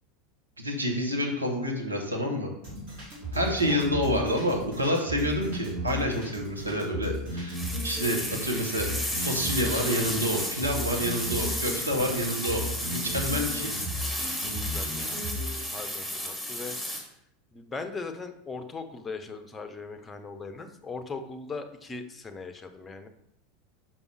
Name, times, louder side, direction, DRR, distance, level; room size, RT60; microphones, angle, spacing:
voice 1, 0.6-2.5 3.3-13.7, equal, 85° right, 1 dB, 1.1 m, -28 dB
sound 1, 2.6-15.5, equal, 55° right, 3.1 m, -35 dB
sound 2, 7.5-17.0, equal, 5° right, 2.0 m, -33 dB
voice 2, 14.4-15.2 15.7-16.7 17.5-23.1, left 4 dB, 20° left, 8 dB, 0.8 m, -39 dB
6.0 x 5.3 x 4.7 m, 0.76 s
figure-of-eight pair, 80°, 0 cm